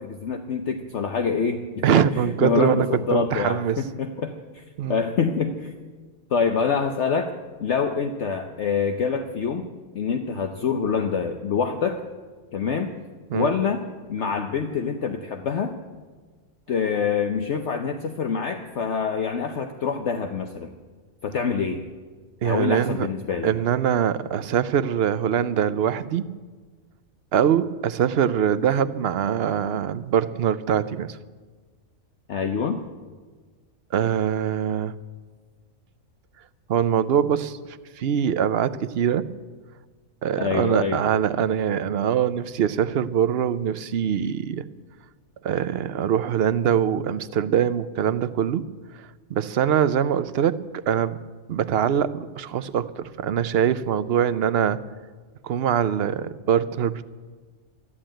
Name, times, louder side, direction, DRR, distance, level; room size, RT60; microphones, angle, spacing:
voice 1, 0.0-4.6 4.9-5.7 6.3-7.3 7.6-9.7 9.9-12.0 12.5-12.9 13.3-15.8 16.7-20.7 21.2-21.8 22.4-23.5 32.3-32.8 40.4-41.0, left 6 dB, 60° left, 6 dB, 1.1 m, -26 dB
voice 2, 1.8-3.8 4.8-5.0 13.3-13.5 22.4-23.1 23.4-26.2 27.3-31.2 33.9-34.9 36.7-37.6 38.0-39.3 40.2-44.6 45.4-48.6 49.3-51.2 51.5-54.8 55.4-57.0, right 9 dB, 55° right, 14 dB, 0.7 m, -23 dB
13.5 x 11.5 x 8.9 m, 1.4 s
omnidirectional pair, 1.5 m